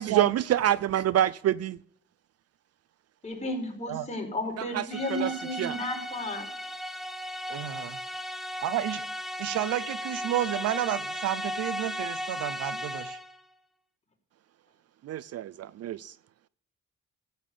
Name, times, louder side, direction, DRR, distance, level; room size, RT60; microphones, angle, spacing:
voice 1, 0.0-1.8 4.7-4.8 5.1-5.3 5.6-5.8 15.0-16.1, right 11 dB, 55° right, 0.5 m, -26 dB
voice 2, 3.2-6.5, left 1 dB, 25° left, 4.7 m, -33 dB
sound 1, 4.9-13.4, equal, ahead, 1.0 m, -36 dB
voice 3, 7.5-8.0 8.6-9.0 9.4-13.2, right 13 dB, 90° right, 0.8 m, -31 dB
13.5 x 8.8 x 5.4 m
cardioid pair, 90°, 30 cm